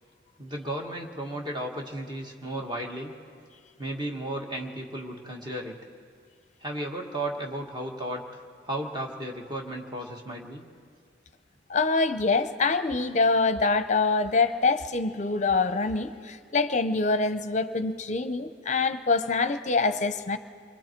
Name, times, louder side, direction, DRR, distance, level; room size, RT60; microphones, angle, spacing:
voice 1, 0.4-3.1 3.8-5.7 6.6-10.6, right 1 dB, 25° right, 1 dB, 1.6 m, -34 dB
voice 2, 11.7-20.4, left 3 dB, 40° left, 11 dB, 0.7 m, -25 dB
28.0 x 21.5 x 4.5 m, 2.1 s
head